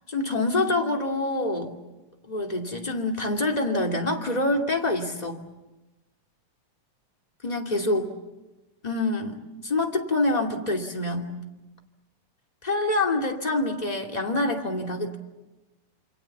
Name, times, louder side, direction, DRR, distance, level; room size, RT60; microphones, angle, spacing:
voice 1, 0.1-1.7 2.3-5.4 7.4-8.1 8.8-11.3 12.6-15.2, left 2 dB, 15° left, 1 dB, 2.2 m, -26 dB
27.5 x 25.0 x 7.2 m, 1.1 s
omnidirectional pair, 3.3 m